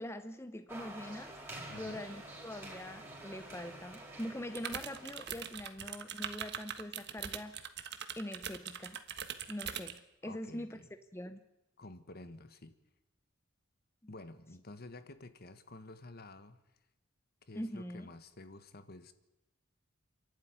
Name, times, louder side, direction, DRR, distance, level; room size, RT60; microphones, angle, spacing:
voice 1, 0.0-1.4 1.8-7.6 8.2-9.0 9.5-10.8 11.1-11.4 17.6-18.1, left 1 dB, 15° left, 9 dB, 0.8 m, -43 dB
sound 1, 0.7-5.7, right 1 dB, 10° right, 4.6 m, -49 dB
sound 2, 1.7-4.7, right 4 dB, 80° left, 6.1 m, -68 dB
voice 2, 1.7-2.0 10.2-10.9 11.8-12.8 14.1-16.6 17.4-19.1, left 2 dB, 50° left, 11 dB, 1.5 m, -50 dB
sound 3, 4.5-10.0, right 8 dB, 55° right, 1.4 m, -42 dB
28.0 x 12.0 x 9.6 m, 0.95 s
head